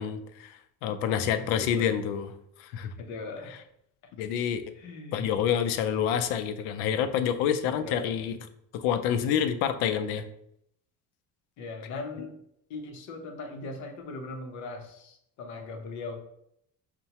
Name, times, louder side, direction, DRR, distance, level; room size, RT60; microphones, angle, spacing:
voice 1, 0.0-2.3 2.6-2.9 4.2-4.6 5.1-8.3 8.7-10.3, left 8 dB, 85° left, 10 dB, 0.5 m, -28 dB
voice 2, 1.6-2.0 3.0-3.5 4.8-5.3 7.8-8.1 11.6-12.4 12.7-16.1, left 3 dB, 50° left, 4 dB, 0.7 m, -39 dB
5.5 x 2.2 x 2.8 m, 0.75 s
cardioid pair, 170°, 37 cm